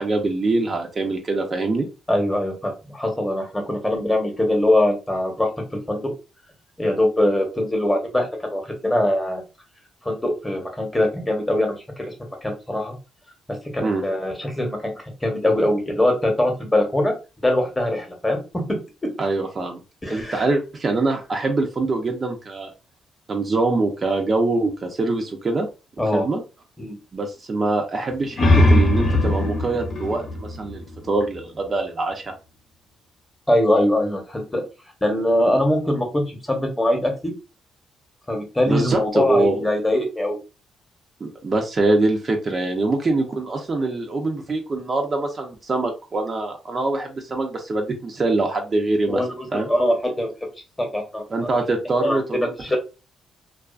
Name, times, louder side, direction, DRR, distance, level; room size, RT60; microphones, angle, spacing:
voice 1, 0.0-1.9 13.8-14.0 19.2-19.8 20.1-22.7 23.3-25.7 26.1-26.4 27.1-32.3 38.7-39.6 41.2-49.2 49.5-49.7 51.3-52.8, right 2 dB, 35° right, 3 dB, 0.5 m, -24 dB
voice 2, 2.1-6.1 6.8-9.4 10.0-12.1 12.4-12.9 13.7-14.9 15.2-17.1 17.4-18.4 20.0-20.4 26.0-26.3 26.8-27.0 33.5-34.6 35.0-37.3 38.3-40.4 49.1-50.3 50.8-51.5 52.0-52.2 52.6-52.8, left 1 dB, 15° left, 2 dB, 0.9 m, -22 dB
sound 1, 28.1-31.5, left 1 dB, 50° left, 0.7 m, -20 dB
2.3 x 2.3 x 2.3 m, 0.30 s
cardioid pair, 90°, 0 cm